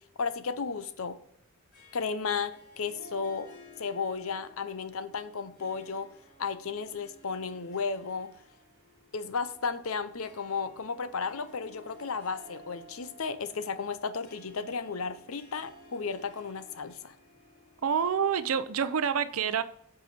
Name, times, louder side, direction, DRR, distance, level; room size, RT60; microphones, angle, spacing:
voice 1, 0.2-1.2 1.9-3.5 3.8-6.1 6.4-8.3 9.1-17.2, left 5 dB, 70° left, 0.7 m, -34 dB
Harp, 1.7-18.5, equal, 55° left, 3.4 m, -55 dB
voice 2, 17.8-19.6, right 7 dB, 70° right, 0.5 m, -27 dB
7.9 x 4.8 x 5.0 m
head